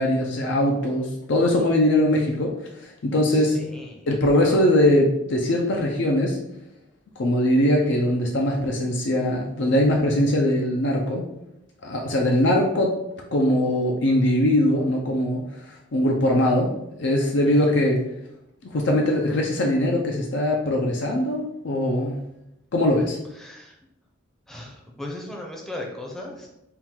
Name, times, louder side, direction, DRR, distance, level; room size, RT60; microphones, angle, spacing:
voice 1, 0.0-2.5 2.8-3.6 4.1-6.4 7.2-11.3 11.8-13.0 13.3-16.7 17.0-18.0 18.7-22.2 22.7-23.2, left 1 dB, 60° left, 0 dB, 0.5 m, -21 dB
voice 2, 3.3-4.1 4.3-4.7 17.4-17.8 23.3-23.8 24.5-26.5, left 1 dB, ahead, -1 dB, 0.6 m, -37 dB
3.7 x 2.3 x 4.3 m, 0.86 s
head